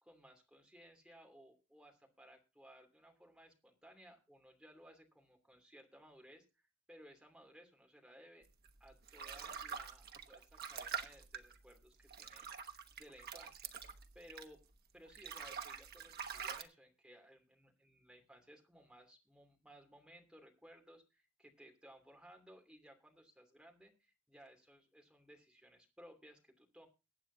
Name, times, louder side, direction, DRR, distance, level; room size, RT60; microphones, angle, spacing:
voice 1, 0.0-6.4 6.9-8.4 8.8-13.7 14.1-14.6 14.9-26.9, equal, 5° right, 2 dB, 2.9 m, -60 dB
sound 1, 8.6-14.7 15.1-16.6, right 7 dB, 50° right, 1.1 m, -46 dB
23.0 x 8.7 x 2.7 m, 0.30 s
head